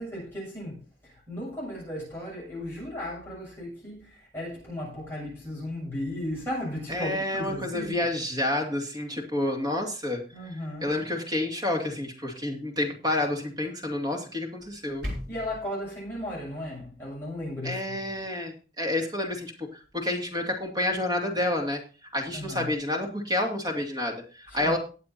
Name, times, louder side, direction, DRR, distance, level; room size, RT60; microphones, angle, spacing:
voice 1, 0.0-8.1 10.3-10.9 15.3-18.0 22.3-22.7 24.5-24.8, left 1 dB, 15° left, 7.0 m, -36 dB
voice 2, 6.9-10.2 10.8-15.1 17.6-21.8 22.1-24.8, left 1 dB, 25° right, 2.5 m, -29 dB
sound 1, 14.6-15.6, left 1 dB, 70° right, 4.0 m, -36 dB
19.0 x 7.4 x 2.8 m
head